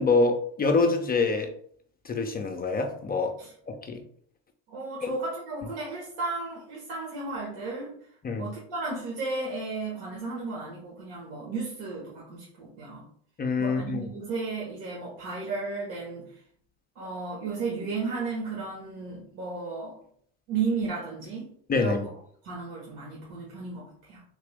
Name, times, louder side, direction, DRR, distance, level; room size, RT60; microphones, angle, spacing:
voice 1, 0.0-1.5 2.0-3.3 3.7-4.0 5.0-5.1 8.2-8.5 13.4-14.0 21.7-22.0, left 3 dB, 25° left, 4 dB, 0.5 m, -25 dB
voice 2, 4.7-7.9 8.3-13.0 13.6-16.4 16.9-20.0 20.5-21.5 21.7-22.1 22.4-24.2, right 4 dB, 65° right, -5 dB, 1.5 m, -34 dB
3.7 x 2.9 x 3.3 m, 0.62 s
hypercardioid pair, 85°, 41 cm